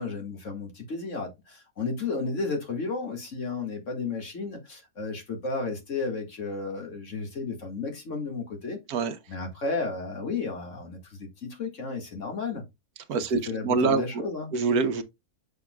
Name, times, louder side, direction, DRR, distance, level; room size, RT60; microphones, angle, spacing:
voice 1, 0.0-8.8 9.3-12.7 13.3-14.7, left 4 dB, 50° left, 2.1 m, -33 dB
voice 2, 13.6-14.0 14.5-15.0, right 4 dB, 80° right, 1.4 m, -24 dB
6.8 x 6.2 x 2.2 m
omnidirectional pair, 1.6 m